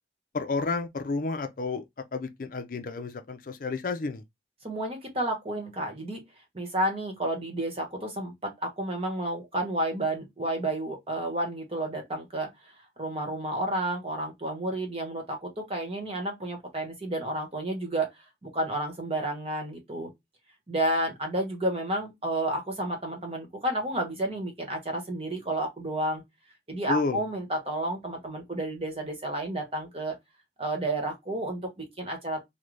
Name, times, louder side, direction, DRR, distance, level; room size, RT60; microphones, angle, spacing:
voice 1, 0.3-1.8 2.1-4.2 26.9-27.2, left 3 dB, 50° left, 0.5 m, -31 dB
voice 2, 4.6-6.2 6.5-12.5 13.0-18.1 18.4-20.1 20.7-26.2 26.7-30.1 30.6-32.4, right 1 dB, 35° right, 1.1 m, -31 dB
3.8 x 2.2 x 3.1 m
head